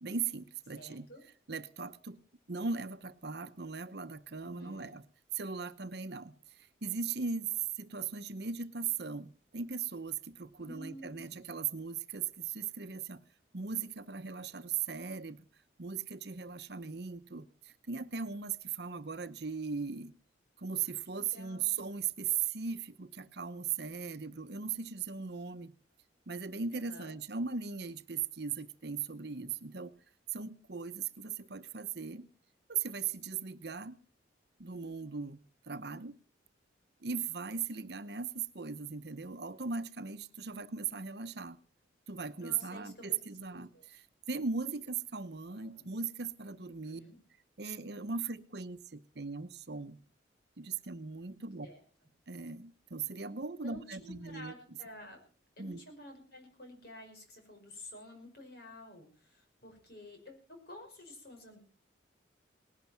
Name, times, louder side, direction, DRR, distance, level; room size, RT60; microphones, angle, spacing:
voice 1, 0.0-1.1 1.5-2.2 2.5-5.0 5.3-13.2 13.5-15.4 15.8-20.1 20.6-25.7 26.3-29.9 30.3-32.3 32.7-34.0 34.6-36.2 37.0-41.6 42.1-47.0 47.6-50.0 50.6-51.7 52.3-54.5 55.6-55.8, right 6 dB, 55° right, 0.8 m, -38 dB
voice 2, 0.7-1.2 4.4-4.9 10.6-11.5 21.1-21.7 26.7-27.1 40.4-40.6 42.4-43.9 45.5-45.9 46.8-47.2 51.6-51.8 53.6-55.2 55.6-61.6, left 1 dB, 50° left, 5.7 m, -51 dB
19.0 x 11.5 x 5.8 m
head